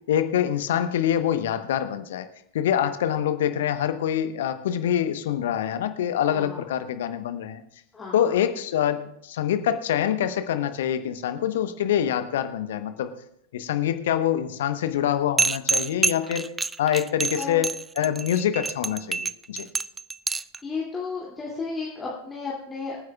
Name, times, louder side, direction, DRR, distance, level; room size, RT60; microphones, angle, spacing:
voice 1, 0.1-2.3 2.5-7.6 8.1-13.1 13.5-16.5 16.8-19.7, left 10 dB, 55° left, 10 dB, 1.0 m, -25 dB
voice 2, 6.3-6.6 7.9-8.3 17.3-17.6 20.6-23.0, left 4 dB, 15° left, -5 dB, 2.6 m, -33 dB
sound 1, 15.4-20.6, right 4 dB, 15° right, 0.3 m, -26 dB
25.5 x 9.6 x 2.4 m, 0.73 s
figure-of-eight pair, 90°, 0 cm